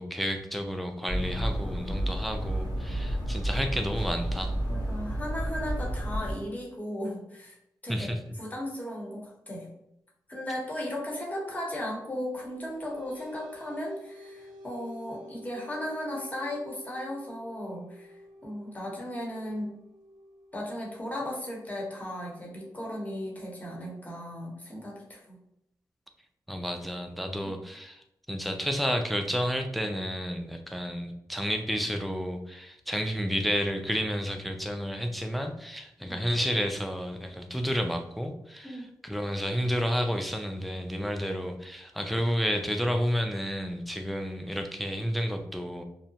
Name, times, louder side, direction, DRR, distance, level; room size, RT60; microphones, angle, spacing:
voice 1, 0.0-4.5 7.9-8.2 26.5-45.8, equal, ahead, 5 dB, 0.4 m, -31 dB
sound 1, 1.1-6.4, right 1 dB, 70° left, 0.9 m, -31 dB
voice 2, 4.7-7.5 7.8-8.1 8.4-9.7 10.3-19.7 20.5-25.4 36.0-36.2 38.6-38.8, left 1 dB, 20° left, -3 dB, 0.9 m, -36 dB
sound 2, 12.3-23.3, left 1 dB, 80° right, 0.4 m, -51 dB
2.7 x 2.0 x 2.8 m, 0.79 s
cardioid pair, 60°, 7 cm